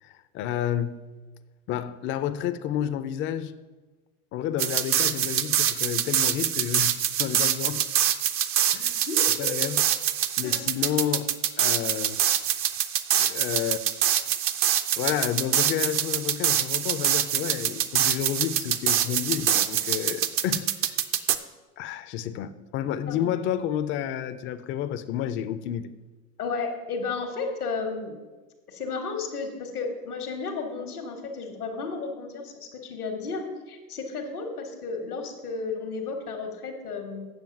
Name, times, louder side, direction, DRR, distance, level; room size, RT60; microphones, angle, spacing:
voice 1, 0.0-1.1 1.7-3.5 4.3-7.8 8.7-9.1 9.4-9.8 10.4-11.3 11.6-12.2 13.2-13.8 14.9-20.7 21.8-25.9, left 10 dB, 30° left, 0.4 m, -30 dB
sound 1, 4.6-21.4, right 10 dB, 30° right, 0.5 m, -25 dB
voice 2, 9.1-9.8 10.4-10.6 23.1-23.3 26.4-28.1 28.7-37.2, left 4 dB, 85° left, 1.4 m, -33 dB
8.1 x 6.8 x 5.8 m
hypercardioid pair, 90°, 44 cm